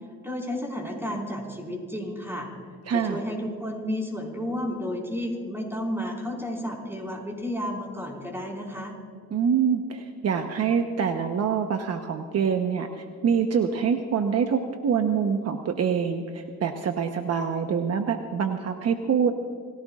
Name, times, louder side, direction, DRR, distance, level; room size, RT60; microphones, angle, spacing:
voice 1, 0.2-2.5 2.9-8.9, equal, 10° right, -1 dB, 5.0 m, -32 dB
voice 2, 2.9-3.2 9.3-19.3, right 7 dB, 55° right, 5 dB, 1.1 m, -25 dB
27.0 x 17.0 x 2.5 m, 2.1 s
cardioid pair, 90°, 30 cm